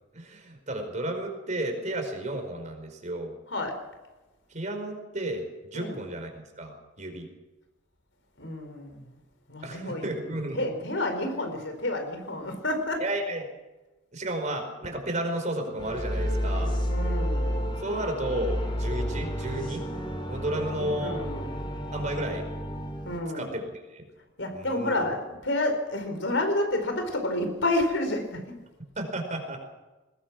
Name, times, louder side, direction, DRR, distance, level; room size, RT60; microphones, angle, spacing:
voice 1, 0.1-3.3 4.5-7.3 9.6-10.6 13.0-13.5 14.1-16.7 17.8-19.8 20.3-21.2 21.9-22.5 23.3-24.1 24.5-25.1 29.0-29.6, right 1 dB, 40° right, 4 dB, 5.0 m, -33 dB
voice 2, 3.5-3.8 5.7-6.0 8.4-9.1 9.5-10.1 10.5-13.0 16.8-17.6 20.5-21.5 23.0-23.6 24.4-28.5, left 1 dB, 75° left, 5 dB, 4.8 m, -30 dB
sound 1, 15.8-23.2, equal, 25° left, 3.1 m, -31 dB
21.0 x 20.5 x 6.2 m, 1.1 s
head